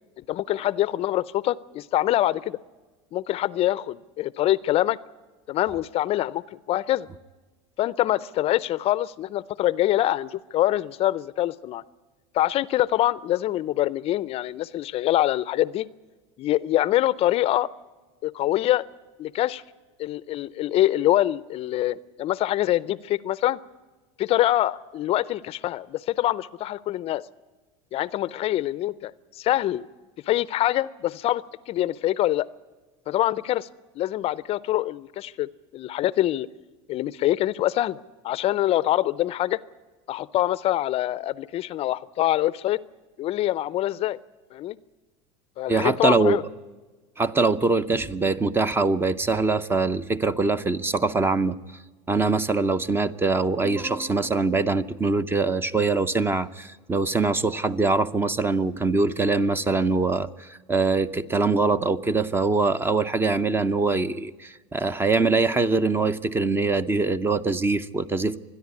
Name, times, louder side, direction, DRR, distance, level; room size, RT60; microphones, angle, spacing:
voice 1, 0.3-2.6 3.1-5.0 5.5-6.4 6.7-7.1 7.8-11.8 12.3-15.9 16.4-17.7 18.2-18.9 19.2-19.6 20.0-23.6 24.2-27.2 27.9-29.9 30.3-32.5 33.1-33.7 34.0-36.5 36.9-39.6 40.1-42.8 43.2-44.2 44.5-44.8 45.6-46.4, left 14 dB, 40° left, 19 dB, 0.5 m, -24 dB
voice 2, 45.7-46.4 47.2-51.6 52.1-68.4, right 3 dB, 15° right, 14 dB, 0.6 m, -23 dB
26.0 x 10.5 x 9.6 m, 1.3 s
supercardioid pair, 130°, 15 cm